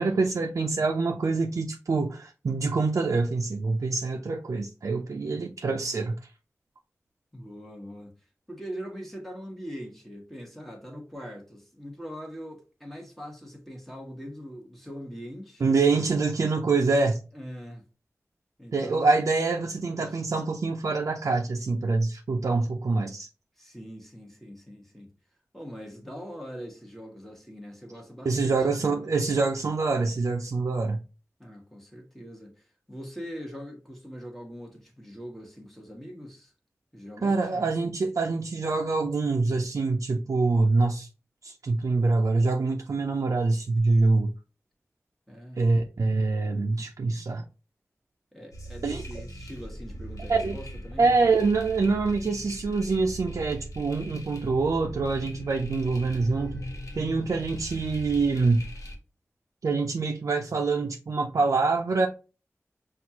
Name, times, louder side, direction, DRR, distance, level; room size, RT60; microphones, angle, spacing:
voice 1, 0.0-6.1 15.6-17.2 18.7-23.3 28.2-31.0 37.2-41.1 41.4-44.3 45.6-47.4 48.8-49.0 50.3-50.6 51.0-56.6 57.0-58.7 59.6-62.1, right 3 dB, 85° right, 0.4 m, -25 dB
voice 2, 7.3-8.1 8.5-15.6 17.3-17.8 18.6-19.2 19.8-20.1 23.6-25.1 25.5-29.2 31.4-36.5 36.9-37.7 45.3-45.6 48.3-51.1, equal, 5° left, 1.1 m, -42 dB
sound 1, 48.5-59.0, equal, 85° left, 1.0 m, -39 dB
6.0 x 2.4 x 2.8 m
wide cardioid pair, 80°, 5 cm